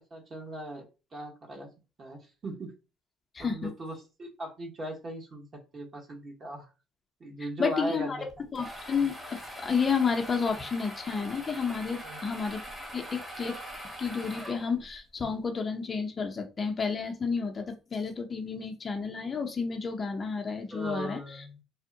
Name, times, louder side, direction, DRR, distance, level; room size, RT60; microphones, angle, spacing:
voice 1, 0.1-1.7 2.0-2.7 3.4-6.7 7.2-8.3 12.0-12.2 20.7-21.6, right 1 dB, 40° right, 1 dB, 1.1 m, -39 dB
voice 2, 3.3-3.7 7.6-8.2 8.5-12.6 12.9-13.6 14.0-21.2, left 5 dB, 35° left, 4 dB, 0.6 m, -31 dB
sound 1, 8.3-15.0, equal, 15° right, 1.0 m, -42 dB
3.4 x 2.1 x 2.6 m, 0.30 s
supercardioid pair, 90°, 0 cm